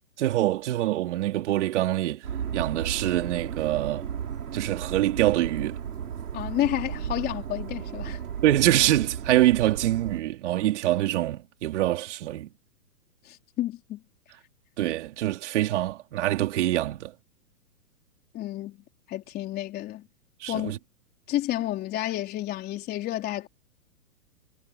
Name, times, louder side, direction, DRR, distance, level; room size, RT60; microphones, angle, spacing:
voice 1, 0.2-2.2 2.5-4.0 4.5-5.8 8.4-12.5 14.8-17.1 20.4-20.8, right 14 dB, 50° right, 4.4 m, -25 dB
sound 1, 2.2-10.2, right 8 dB, 85° right, 6.7 m, -34 dB
voice 2, 6.3-8.2 13.3-14.0 18.3-18.8 19.1-20.1 20.5-20.7 21.3-23.5, left 14 dB, 20° left, 3.9 m, -30 dB
hypercardioid pair, 155°, 44 cm